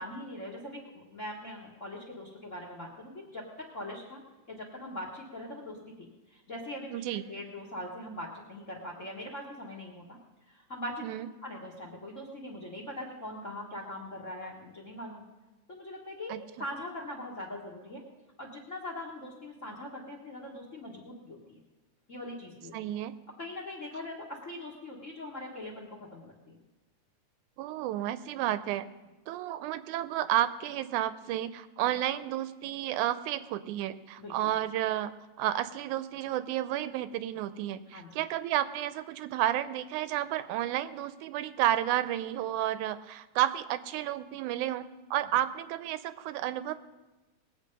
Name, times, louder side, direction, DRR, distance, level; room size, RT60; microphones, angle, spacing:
voice 1, 0.0-4.2 4.5-10.2 10.5-11.0 11.4-15.2 15.7-16.3 16.6-18.0 18.4-21.6 22.1-22.7 23.4-26.6 34.2-34.5 37.9-38.2, left 1 dB, 35° left, 0 dB, 1.2 m, -42 dB
voice 2, 6.9-7.2 11.0-11.3 16.3-16.4 22.7-23.1 27.6-28.9 29.3-35.1 35.4-46.8, right 12 dB, 85° right, 13 dB, 2.1 m, -31 dB
20.0 x 8.1 x 5.3 m, 1.1 s
omnidirectional pair, 3.4 m